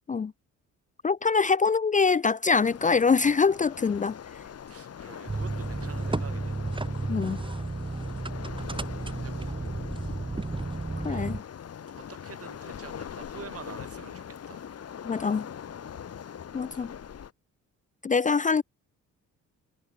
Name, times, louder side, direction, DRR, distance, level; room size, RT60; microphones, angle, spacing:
voice 1, 1.0-4.2 7.1-7.4 11.0-11.4 15.0-15.5 16.5-16.9 18.0-18.6, left 5 dB, 25° left, 0.6 m, -24 dB
Waves surf, 2.5-17.3, left 8 dB, 55° left, 4.3 m, -42 dB
voice 2, 4.7-6.6 7.7-8.0 8.5-10.5 11.1-11.3 11.9-14.6 15.8-16.1 16.6-16.9, right 8 dB, 50° right, 3.5 m, -48 dB
sound 1, 5.3-11.4, right 3 dB, 15° right, 1.8 m, -32 dB
cardioid pair, 90°, 30 cm